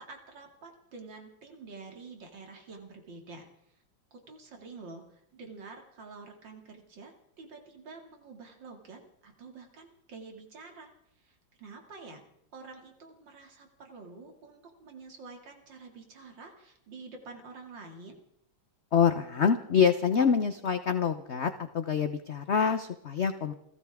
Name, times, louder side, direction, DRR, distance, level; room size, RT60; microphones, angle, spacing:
voice 1, 0.0-3.5 4.1-10.9 11.2-12.2 12.5-18.2, right 4 dB, 65° right, 3 dB, 3.1 m, -48 dB
voice 2, 18.9-23.5, left 7 dB, 55° left, 8 dB, 0.7 m, -26 dB
29.5 x 14.0 x 3.6 m, 0.75 s
omnidirectional pair, 2.1 m